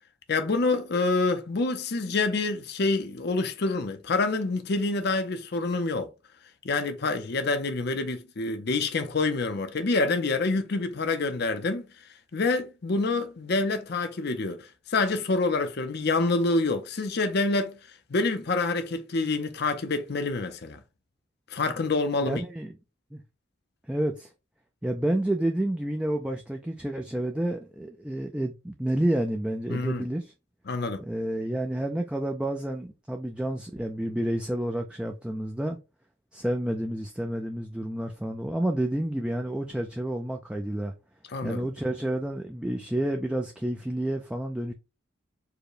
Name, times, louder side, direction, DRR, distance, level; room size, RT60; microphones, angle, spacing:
voice 1, 0.3-6.1 6.6-11.9 12.3-17.8 18.1-20.8 21.5-22.4 29.7-30.1 30.7-31.0 41.3-41.7, left 3 dB, 50° left, 0.6 m, -27 dB
voice 2, 22.2-22.7 23.1-23.2 23.9-24.3 24.8-30.3 31.0-35.8 36.3-40.9 41.4-44.7, right 1 dB, 5° right, 0.3 m, -29 dB
4.8 x 2.1 x 4.8 m
head